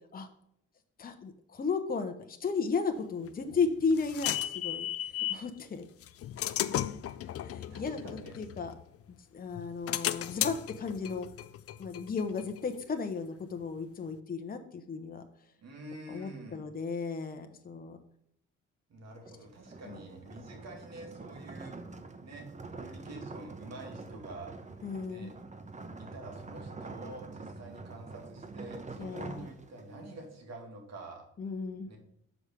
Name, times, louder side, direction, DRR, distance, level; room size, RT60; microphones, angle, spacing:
voice 1, 1.0-5.9 6.7-7.0 7.4-8.0 8.4-8.7 9.1-11.3 11.8-15.2 16.1-18.0 19.9-20.0 24.8-25.3 29.0-29.5 31.4-31.9, left 5 dB, 30° left, 6 dB, 0.9 m, -34 dB
sound 1, 3.3-5.5 6.0-9.1 9.5-13.0, left 12 dB, 50° left, 0.5 m, -35 dB
voice 2, 7.5-8.4 15.6-16.7 18.9-21.8 22.2-22.5 22.7-24.8 25.1-25.3 26.0-31.2 31.9-32.0, right 2 dB, 60° right, 2 dB, 2.3 m, -47 dB
sound 2, 19.2-30.1, right 3 dB, 25° right, 0.8 m, -46 dB
6.2 x 4.9 x 6.7 m, 0.72 s
cardioid pair, 90°, 30 cm